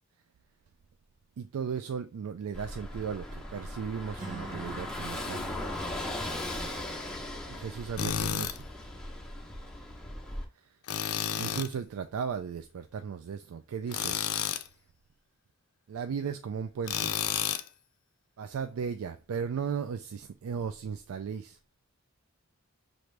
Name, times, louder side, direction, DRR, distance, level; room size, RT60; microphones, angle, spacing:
voice 1, 1.4-5.5 7.5-8.6 11.4-14.2 15.9-17.2 18.4-21.6, right 6 dB, 80° right, 0.4 m, -36 dB
Car passing by / Engine, 2.5-10.4, left 1 dB, 5° left, 0.8 m, -38 dB
Acoustic guitar, 4.2-8.1, right 2 dB, 35° right, 1.3 m, -48 dB
Tools, 8.0-8.6 10.9-11.7 13.9-14.7 16.9-17.7, left 9 dB, 85° left, 0.4 m, -31 dB
5.9 x 2.6 x 3.2 m
head